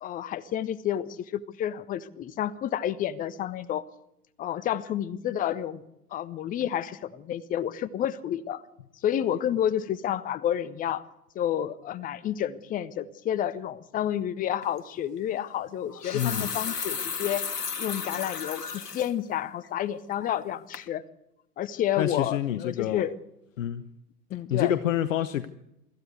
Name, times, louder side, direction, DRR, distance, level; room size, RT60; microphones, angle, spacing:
voice 1, 0.0-3.8 4.4-5.8 6.1-8.6 9.0-11.0 11.3-17.5 17.8-21.0 21.6-23.1 24.3-24.7, left 10 dB, 15° left, 17 dB, 0.7 m, -30 dB
sound 1, 14.6-14.8 15.8-19.1 19.6-19.7 20.2-20.5 20.7-20.9, left 6 dB, 75° left, 1.5 m, -34 dB
voice 2, 16.1-16.5 22.0-23.0 23.6-23.8 24.5-25.5, left 11 dB, 55° left, 12 dB, 1.0 m, -27 dB
24.5 x 14.5 x 8.2 m, 0.89 s
figure-of-eight pair, 95°, 48 cm